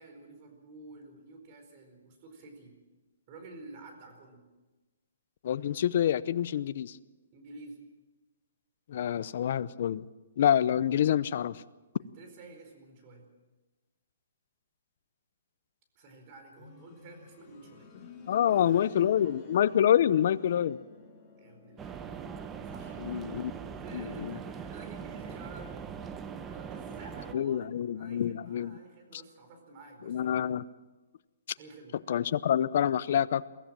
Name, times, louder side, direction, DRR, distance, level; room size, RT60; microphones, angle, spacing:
voice 1, 0.0-2.8 3.3-4.4 7.3-7.8 12.0-13.3 15.9-17.9 18.3-19.4 21.4-22.3 22.7-23.0 23.8-30.5 31.6-32.0, right 3 dB, 30° right, 5 dB, 4.5 m, -50 dB
voice 2, 5.4-7.0 8.9-10.0 10.4-11.6 18.3-20.8 23.0-23.5 23.9-24.4 27.3-28.8 29.1-29.2 30.1-30.6 32.1-33.4, left 10 dB, 50° left, 16 dB, 0.7 m, -27 dB
sound 1, 16.6-27.3 27.6-27.7 28.6-28.7, left 3 dB, 15° left, 3.2 m, -54 dB
sound 2, 21.8-27.3, right 7 dB, 15° right, 0.8 m, -41 dB
23.0 x 16.0 x 7.6 m, 1.2 s
hypercardioid pair, 165°, 0 cm